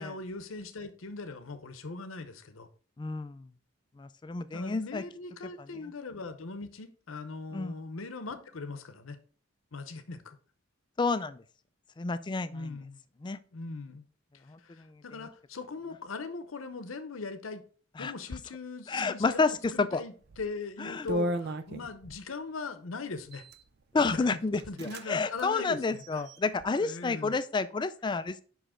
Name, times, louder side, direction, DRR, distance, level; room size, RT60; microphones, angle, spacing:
voice 1, 0.0-2.7 4.5-9.2 9.7-10.4 12.5-13.0 13.5-14.0 14.6-17.6 18.0-23.4 24.1-24.4 24.7-26.3 26.8-27.3, left 3 dB, 85° left, 0.8 m, -40 dB
voice 2, 3.0-3.5 4.0-5.0 7.5-7.8 11.0-11.4 12.0-12.8 13.2-13.4 14.5-14.9 18.0-18.1 18.9-20.0 20.8-21.1 23.9-28.4, left 4 dB, 20° left, 0.3 m, -30 dB
sound 1, 20.2-20.5 21.1-22.2 23.2-23.6 24.2-24.3 24.5-25.1 25.3-25.5 26.0-26.6, equal, 50° right, 0.5 m, -35 dB
5.5 x 5.0 x 3.7 m
head